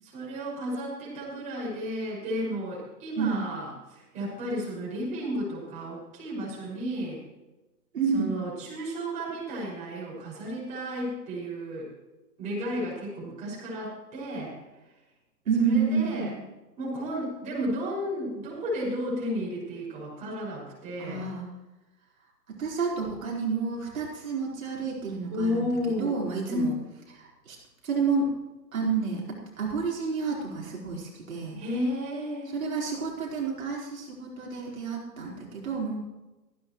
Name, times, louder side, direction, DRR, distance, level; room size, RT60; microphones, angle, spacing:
voice 1, 0.0-7.2 8.1-11.9 12.4-14.6 15.6-16.3 16.8-21.3 25.3-26.2 26.5-26.7 31.5-32.5, equal, 15° right, -5 dB, 6.2 m, -32 dB
voice 2, 7.9-8.3 15.5-16.4 21.0-21.5 22.5-25.7 26.0-26.7 27.2-27.6 27.8-28.3 28.7-31.6 32.5-36.0, right 5 dB, 55° right, -4 dB, 4.6 m, -29 dB
17.5 x 16.0 x 3.2 m, 1.1 s
figure-of-eight pair, 145°, 50 cm